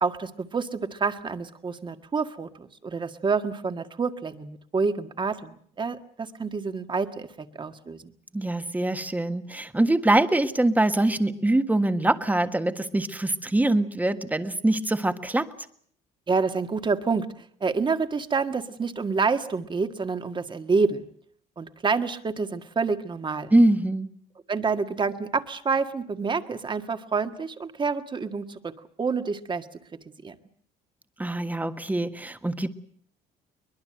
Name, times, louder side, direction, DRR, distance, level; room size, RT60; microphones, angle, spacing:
voice 1, 0.0-8.1 16.3-21.0 21.6-23.5 24.5-28.7 29.0-29.7 30.0-30.3, right 4 dB, 30° right, 9 dB, 1.7 m, -28 dB
voice 2, 8.3-15.5 23.5-24.1 31.2-32.7, right 1 dB, 10° right, 9 dB, 1.5 m, -23 dB
23.0 x 21.0 x 7.8 m, 0.62 s
cardioid pair, 110°, 17 cm